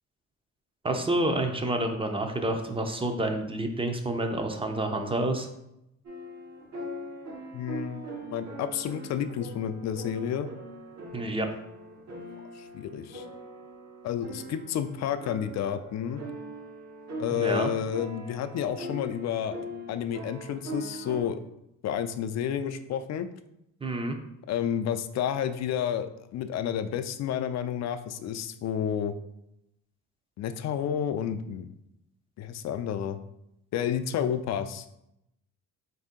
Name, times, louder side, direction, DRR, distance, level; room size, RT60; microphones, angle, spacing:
voice 1, 0.8-5.5 11.1-11.5 17.3-17.7 23.8-24.2, right 1 dB, 20° right, 5 dB, 0.5 m, -28 dB
sound 1, 6.0-21.2, right 1 dB, 60° right, 1.2 m, -41 dB
voice 2, 7.5-10.5 12.5-13.3 14.0-16.2 17.2-19.5 19.9-21.4 21.8-23.3 24.5-29.1 30.4-31.7 32.4-33.2 33.7-34.9, left 9 dB, 60° left, 10 dB, 0.4 m, -30 dB
4.2 x 2.7 x 3.6 m, 0.83 s
cardioid pair, 90°, 30 cm